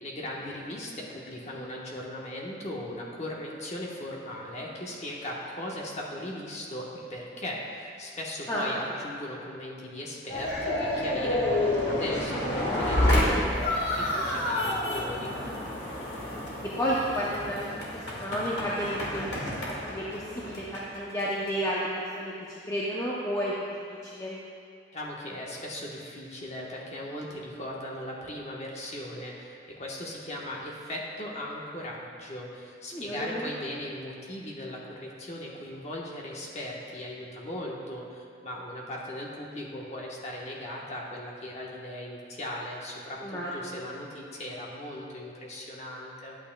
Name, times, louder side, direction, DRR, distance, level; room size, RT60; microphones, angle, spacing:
voice 1, 0.0-15.3 24.9-46.4, left 1 dB, 35° left, -3 dB, 1.1 m, -38 dB
sound 1, 10.3-21.6, left 1 dB, 75° left, 1.7 m, -29 dB
voice 2, 16.8-19.3 19.6-22.3 22.7-23.5 23.9-24.4 32.9-33.5 43.2-43.8, equal, 15° left, -6 dB, 0.6 m, -31 dB
11.0 x 8.8 x 2.3 m, 2.3 s
head